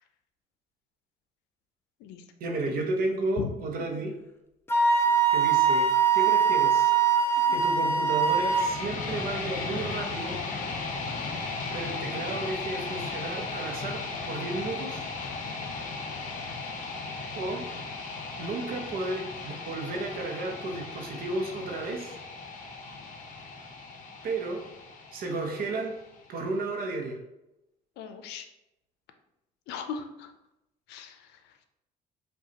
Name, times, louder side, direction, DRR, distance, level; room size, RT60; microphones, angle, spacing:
voice 1, 2.4-4.1 5.3-6.9 7.5-10.4 11.7-15.1 17.3-17.7 18.4-22.1 24.2-24.6 25.1-25.9 26.3-27.2, right 2 dB, 60° right, 2 dB, 0.7 m, -33 dB
Wind instrument woodwind instrument, 4.7-8.7, right 6 dB, 15° left, 0.4 m, -22 dB
sound 1, 8.2-26.2, left 4 dB, 50° left, 0.7 m, -36 dB
voice 2, 28.0-28.5 29.7-30.3 30.9-31.3, left 7 dB, 85° left, 8 dB, 0.5 m, -38 dB
4.9 x 2.3 x 2.8 m, 0.89 s
cardioid pair, 110°, 17 cm